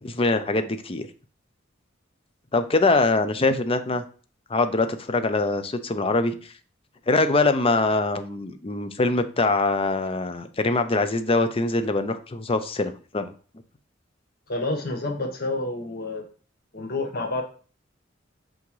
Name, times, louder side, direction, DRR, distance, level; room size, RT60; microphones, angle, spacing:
voice 1, 0.0-1.1 2.5-4.0 4.5-6.5 7.1-13.3, left 3 dB, 30° left, 9 dB, 0.6 m, -23 dB
voice 2, 14.5-16.2 16.7-17.4, left 2 dB, 55° left, 3 dB, 1.4 m, -29 dB
5.9 x 5.1 x 3.2 m, 0.39 s
head